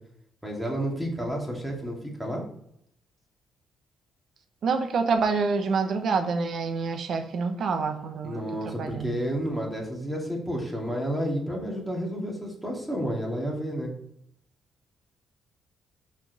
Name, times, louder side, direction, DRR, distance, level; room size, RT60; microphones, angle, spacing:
voice 1, 0.4-2.4 8.2-13.9, equal, 5° right, 2.4 m, -31 dB
voice 2, 4.6-9.2, right 4 dB, 60° right, 0.9 m, -27 dB
6.0 x 4.6 x 6.5 m
cardioid pair, 90°, 0 cm